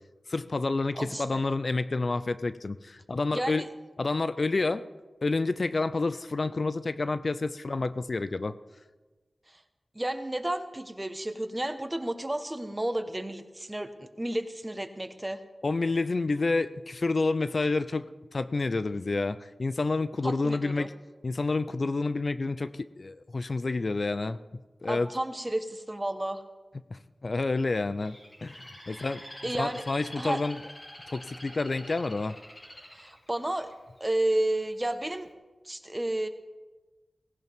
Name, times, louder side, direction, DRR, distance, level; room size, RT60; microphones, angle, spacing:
voice 1, 0.3-3.7 4.0-4.8 5.2-8.6 15.6-18.1 18.3-20.9 21.2-25.1 26.9-29.2 29.5-30.6 31.1-32.4, left 3 dB, 55° left, 13 dB, 0.5 m, -29 dB
voice 2, 0.9-1.4 3.3-3.7 9.5-9.6 9.9-15.4 20.2-20.9 24.8-26.4 28.9-29.1 29.4-29.8 30.2-30.4 32.9-33.7 34.0-35.3 35.6-36.3, right 1 dB, 20° right, 8 dB, 1.2 m, -32 dB
Bird, 28.0-34.1 34.6-35.0, left 1 dB, 30° left, 5.3 m, -47 dB
18.0 x 17.0 x 3.6 m, 1.3 s
wide cardioid pair, 65°, 0 cm